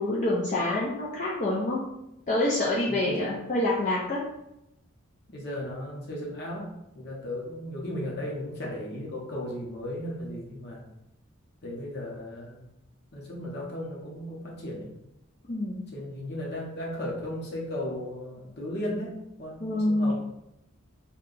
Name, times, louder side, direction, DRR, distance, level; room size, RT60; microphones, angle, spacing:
voice 1, 0.0-1.8 2.3-4.2 15.5-15.8 19.6-20.1, left 1 dB, 35° left, -5 dB, 0.4 m, -26 dB
voice 2, 2.9-3.3 5.3-10.8 11.6-12.6 13.1-14.9 15.9-20.1, left 1 dB, 50° left, -2 dB, 0.8 m, -36 dB
2.7 x 2.3 x 3.8 m, 0.87 s
head